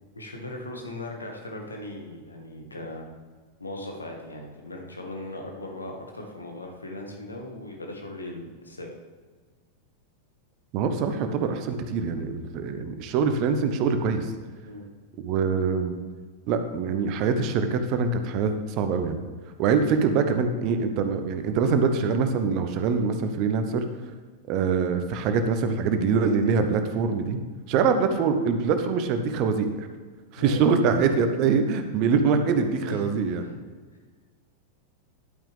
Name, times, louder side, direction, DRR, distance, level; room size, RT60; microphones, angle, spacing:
voice 1, 0.1-3.1 3.6-8.9 14.6-14.8 30.4-30.6 32.8-33.5, left 1 dB, 80° left, 1 dB, 1.7 m, -38 dB
voice 2, 10.7-14.3 15.2-15.9 16.5-19.2 19.6-23.8 24.5-27.4 27.7-29.9 30.3-33.4, right 5 dB, 40° right, 7 dB, 0.9 m, -24 dB
11.0 x 8.8 x 3.5 m, 1.5 s
figure-of-eight pair, 90°, 0 cm